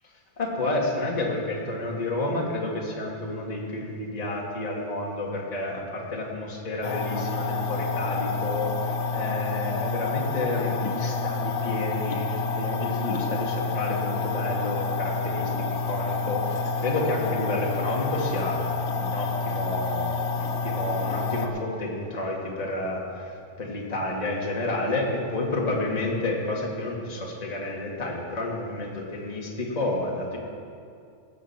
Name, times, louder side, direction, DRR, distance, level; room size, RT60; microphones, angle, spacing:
voice 1, 0.4-18.6 18.9-30.4, left 2 dB, 20° left, -2 dB, 1.4 m, -30 dB
sound 1, 6.8-21.5, left 4 dB, 70° left, 2.1 m, -28 dB
18.0 x 6.4 x 7.2 m, 2.4 s
omnidirectional pair, 3.5 m